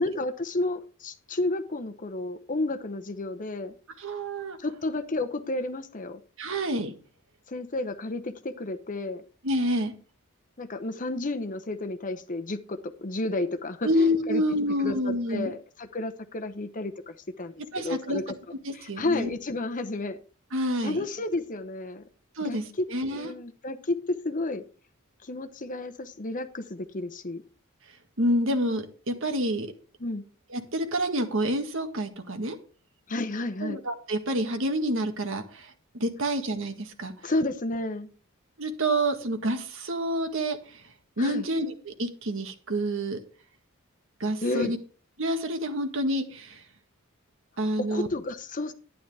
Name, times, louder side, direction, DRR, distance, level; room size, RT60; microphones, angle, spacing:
voice 1, 0.0-3.7 4.6-6.2 7.5-9.2 10.6-14.4 14.8-15.0 15.3-18.3 18.7-20.2 20.8-22.0 22.4-24.6 25.2-27.4 30.0-30.2 33.1-33.8 37.2-38.1 41.2-41.5 44.4-44.7 47.8-48.7, left 2 dB, 35° left, 7 dB, 0.9 m, -31 dB
voice 2, 4.0-4.6 6.4-6.9 9.4-9.9 13.8-15.5 17.7-18.2 18.6-19.3 20.5-21.1 22.4-23.3 28.2-29.7 30.5-32.6 33.6-37.3 38.6-40.8 41.2-43.2 44.2-44.8 45.2-46.6 47.6-48.1, equal, 60° right, 6 dB, 1.7 m, -28 dB
11.5 x 10.0 x 3.4 m, 0.38 s
head